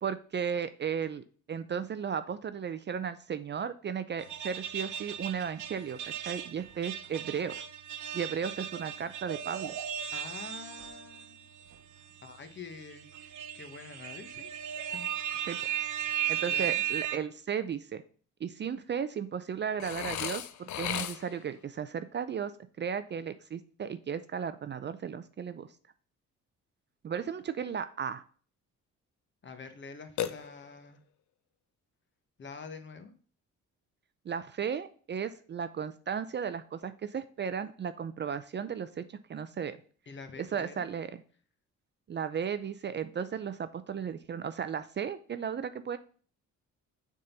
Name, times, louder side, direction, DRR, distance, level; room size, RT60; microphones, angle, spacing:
voice 1, 0.0-7.7 8.1-9.7 15.5-15.6 16.3-18.0 18.4-22.5 22.8-25.7 27.0-28.2 34.3-39.8 40.4-41.1 42.1-46.0, right 7 dB, 35° right, 12 dB, 0.5 m, -35 dB
sound 1, 4.2-11.3 11.7-11.8 12.8-17.2, right 11 dB, 80° right, 0.7 m, -36 dB
voice 2, 10.1-11.5 12.2-14.5 14.9-15.1 16.4-16.8 29.4-31.0 32.4-33.1 40.1-40.9, left 4 dB, 40° left, 8 dB, 1.1 m, -46 dB
Burping eructation, 19.8-21.5 30.2-31.0, left 10 dB, 70° left, 0.6 m, -36 dB
6.6 x 3.7 x 5.5 m, 0.42 s
cardioid pair, 90°, 30 cm